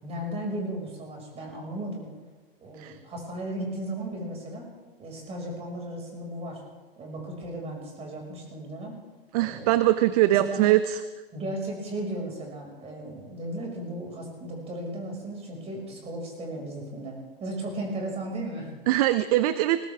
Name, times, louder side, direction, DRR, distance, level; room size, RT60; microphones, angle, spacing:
voice 1, 0.0-2.1 2.6-4.7 5.0-6.6 7.0-9.0 9.4-9.8 10.3-10.6 11.3-18.7, right 1 dB, 20° right, 0 dB, 5.7 m, -35 dB
voice 2, 9.3-11.0 18.9-19.9, right 15 dB, 40° right, 13 dB, 0.6 m, -22 dB
20.5 x 18.0 x 3.5 m, 1.3 s
hypercardioid pair, 120°, 30 cm